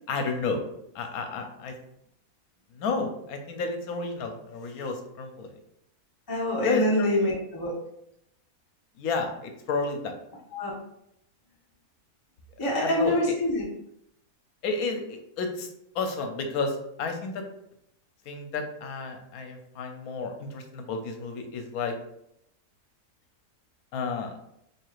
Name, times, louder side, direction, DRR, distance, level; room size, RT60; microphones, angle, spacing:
voice 1, 0.1-0.6 0.9-1.7 2.7-5.5 6.6-7.3 9.0-10.2 12.6-13.2 14.6-17.4 18.3-21.9 23.9-24.4, left 4 dB, 80° left, 5 dB, 1.1 m, -31 dB
voice 2, 6.3-7.7 10.5-10.8 12.6-13.7, left 1 dB, 20° left, -4 dB, 0.7 m, -25 dB
4.6 x 2.9 x 2.4 m, 0.77 s
omnidirectional pair, 1.6 m